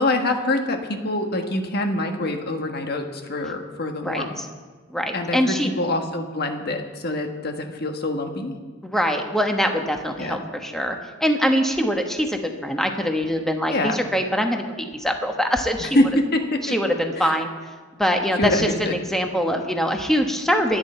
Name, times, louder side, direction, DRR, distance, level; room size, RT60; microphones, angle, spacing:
voice 1, 0.0-4.3 5.1-8.5 10.2-10.4 13.7-14.0 15.8-16.7 17.2-17.3 18.4-19.0, left 1 dB, 50° left, 4 dB, 1.4 m, -25 dB
voice 2, 4.0-4.4 4.9-5.7 8.8-16.0 16.6-17.5 18.0-20.8, equal, ahead, 3 dB, 1.2 m, -23 dB
24.0 x 9.2 x 4.4 m, 1.4 s
head